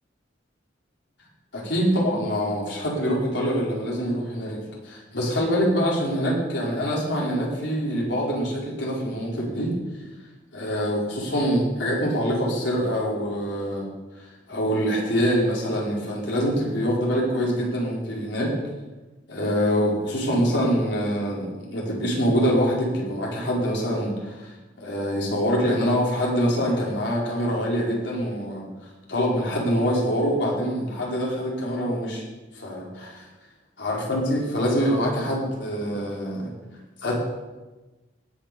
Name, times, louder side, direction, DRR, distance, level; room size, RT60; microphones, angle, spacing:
voice 1, 1.5-9.8 10.5-13.9 14.2-18.5 19.3-28.7 29.1-32.2 32.5-33.2 33.8-36.5 37.0-37.2, equal, 70° left, -3 dB, 5.0 m, -25 dB
19.0 x 7.1 x 7.1 m, 1.1 s
head